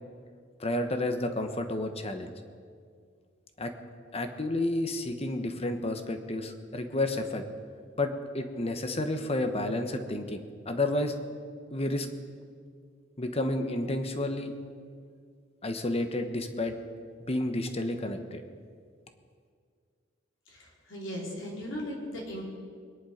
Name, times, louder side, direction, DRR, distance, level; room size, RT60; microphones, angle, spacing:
voice 1, 0.6-2.3 3.6-3.7 4.1-7.4 8.0-11.1 11.7-12.1 13.2-14.5 15.6-16.8 17.2-18.4, left 1 dB, 30° left, 7 dB, 1.2 m, -31 dB
voice 2, 20.5-22.4, equal, 80° left, -3 dB, 4.0 m, -37 dB
23.5 x 10.5 x 5.2 m, 2.1 s
head